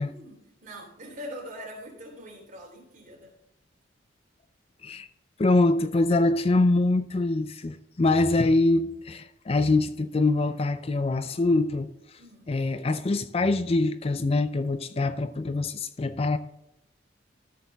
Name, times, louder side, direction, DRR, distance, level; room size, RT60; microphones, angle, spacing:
voice 1, 0.0-3.3 12.2-12.5, equal, 40° right, 3.3 m, -43 dB
voice 2, 5.4-12.2 12.5-16.4, left 2 dB, 30° left, 0.4 m, -24 dB
13.5 x 6.7 x 3.4 m
head